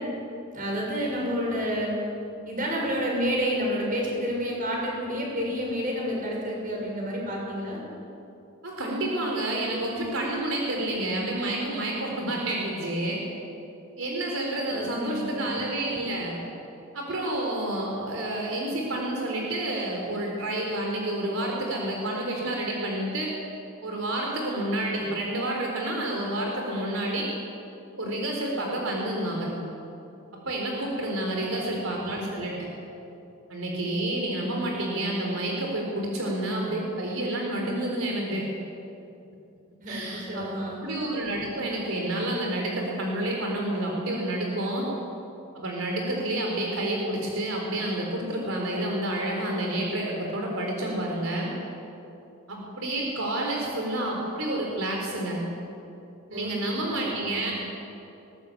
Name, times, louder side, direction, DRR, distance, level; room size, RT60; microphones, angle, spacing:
voice 1, 0.5-2.0 2.5-7.8 14.7-15.6 31.3-31.8 39.8-40.8 56.3-56.5 57.3-57.4, equal, 40° right, -2 dB, 6.5 m, -30 dB
voice 2, 8.6-13.2 14.0-16.4 16.9-23.3 23.8-27.3 28.0-29.5 30.3-32.7 33.5-38.5 39.9-40.5 40.8-44.9 45.5-51.5 52.5-55.4 56.3-57.5, right 1 dB, 75° right, -1 dB, 4.1 m, -29 dB
21.0 x 19.0 x 8.5 m, 2.8 s
head